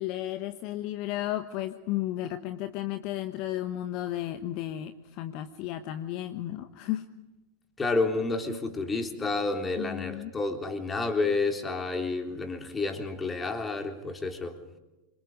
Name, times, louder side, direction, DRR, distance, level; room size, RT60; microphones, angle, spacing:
voice 1, 0.0-7.1 9.8-10.3, left 13 dB, 40° left, 10 dB, 1.2 m, -33 dB
voice 2, 7.8-14.6, left 3 dB, 15° left, 5 dB, 3.6 m, -30 dB
27.0 x 25.0 x 5.4 m, 1.0 s
figure-of-eight pair, 90°, 0 cm